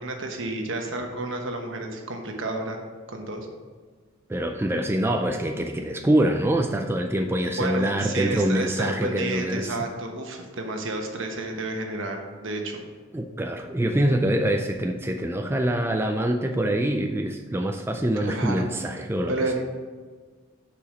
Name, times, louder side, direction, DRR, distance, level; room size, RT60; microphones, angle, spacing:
voice 1, 0.0-2.8 3.1-3.5 7.5-12.8 18.2-18.7 19.3-19.6, right 2 dB, 65° right, 3 dB, 1.2 m, -31 dB
voice 2, 4.3-9.8 13.1-19.3, right 1 dB, 10° right, 4 dB, 0.4 m, -25 dB
6.9 x 4.9 x 6.2 m, 1.5 s
head